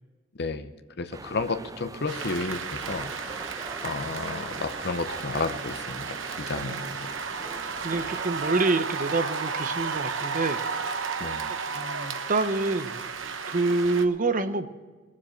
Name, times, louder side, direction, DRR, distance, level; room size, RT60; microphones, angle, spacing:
voice 1, 0.4-0.7 1.0-3.4 3.8-7.0 11.2-11.5, left 3 dB, 55° left, 9 dB, 0.8 m, -32 dB
sound 1, 1.1-8.5, right 3 dB, 20° right, 0.3 m, -42 dB
sound 2, 2.1-14.1, right 5 dB, 80° right, 0.9 m, -33 dB
voice 2, 6.5-6.9 7.8-10.6 11.5-13.1 13.5-14.7, right 3 dB, 40° right, 10 dB, 0.8 m, -27 dB
20.0 x 7.5 x 6.4 m, 1.4 s
head